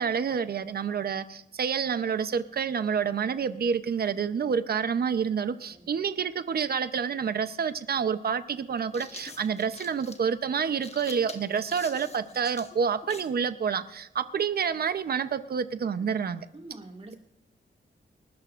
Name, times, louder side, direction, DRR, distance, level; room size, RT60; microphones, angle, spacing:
voice 1, 0.0-16.5, right 6 dB, 60° right, 0.8 m, -28 dB
sound 1, 7.5-7.6 8.6-13.4, left 3 dB, 35° left, 1.3 m, -46 dB
voice 2, 16.5-17.2, right 2 dB, 35° right, 2.2 m, -45 dB
28.5 x 13.0 x 2.5 m
wide cardioid pair, 155°, 18 cm